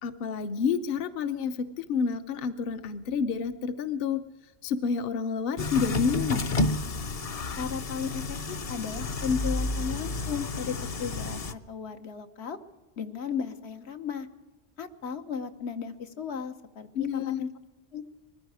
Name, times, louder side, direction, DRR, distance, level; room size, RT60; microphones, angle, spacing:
voice 1, 0.0-4.2 4.6-6.6 16.9-17.4, left 6 dB, 65° left, 10 dB, 0.9 m, -29 dB
sound 1, 5.6-11.5, left 2 dB, 40° left, 0.6 m, -31 dB
voice 2, 7.6-12.6 13.0-14.3 14.8-17.5 17.9-18.0, left 6 dB, 80° left, 7 dB, 1.2 m, -35 dB
21.0 x 14.5 x 4.8 m, 1.2 s
omnidirectional pair, 1.1 m